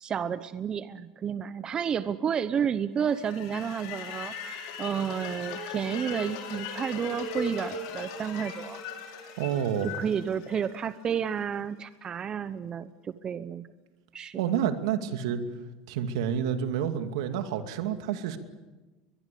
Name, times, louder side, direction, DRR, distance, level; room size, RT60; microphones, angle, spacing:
voice 1, 0.0-8.8 9.8-13.7 14.1-14.4, right 7 dB, 30° right, 13 dB, 0.9 m, -31 dB
sound 1, 3.1-11.2, left 4 dB, 75° left, 5.8 m, -38 dB
voice 2, 9.4-9.9 14.4-15.4 15.9-18.4, right 9 dB, 80° right, 7 dB, 2.5 m, -29 dB
22.5 x 22.0 x 8.5 m, 1.2 s
supercardioid pair, 115°, 3 cm